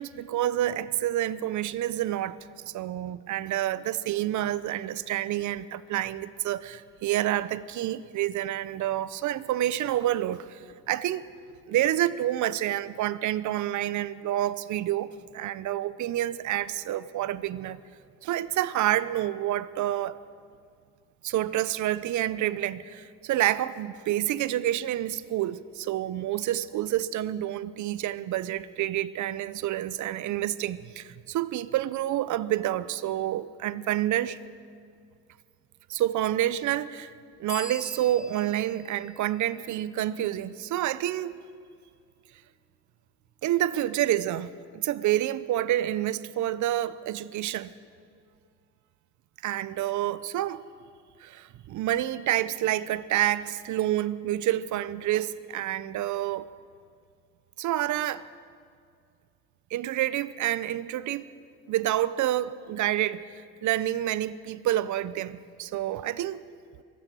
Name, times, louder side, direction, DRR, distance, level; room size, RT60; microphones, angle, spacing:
voice 1, 0.0-2.4 2.7-11.3 11.7-17.8 18.2-20.2 21.2-34.4 35.9-37.1 37.4-41.4 43.4-47.7 49.4-50.6 51.2-56.5 57.6-58.2 59.7-61.3 61.7-66.4, right 13 dB, 75° right, 0.7 m, -28 dB
sound 1, 37.5-41.0, left 2 dB, 25° left, 2.0 m, -45 dB
23.5 x 9.3 x 6.3 m
cardioid pair, 90°, 30 cm